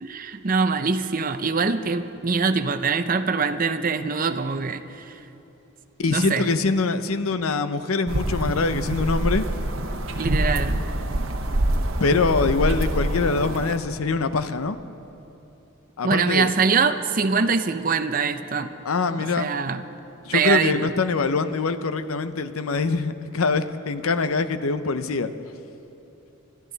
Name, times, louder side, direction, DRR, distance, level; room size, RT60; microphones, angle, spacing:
voice 1, 0.0-5.1 6.1-6.5 10.2-10.8 16.0-18.7 19.2-19.8 20.3-20.9, right 5 dB, 40° right, 9 dB, 0.6 m, -23 dB
voice 2, 6.0-9.5 12.0-14.8 16.0-16.5 18.8-19.5 20.2-25.3, left 4 dB, 85° left, 11 dB, 0.7 m, -24 dB
sound 1, 8.1-13.8, right 1 dB, 70° right, 1.1 m, -25 dB
24.5 x 13.0 x 4.0 m, 3.0 s
head